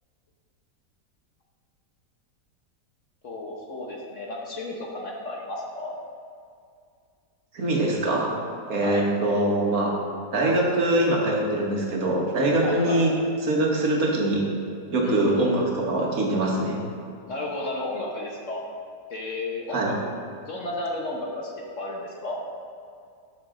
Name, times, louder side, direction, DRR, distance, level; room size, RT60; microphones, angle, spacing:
voice 1, 3.2-5.9 8.8-9.0 12.6-13.1 15.0-15.1 17.3-18.6 19.1-20.1 20.5-21.5 21.8-22.4, left 2 dB, 50° left, -2 dB, 1.1 m, -33 dB
voice 2, 7.5-8.3 8.7-9.9 10.3-13.1 13.4-14.4 14.9-16.8 19.7-19.9, right 1 dB, 55° right, -2 dB, 1.7 m, -23 dB
12.0 x 6.2 x 3.7 m, 2.3 s
omnidirectional pair, 1.9 m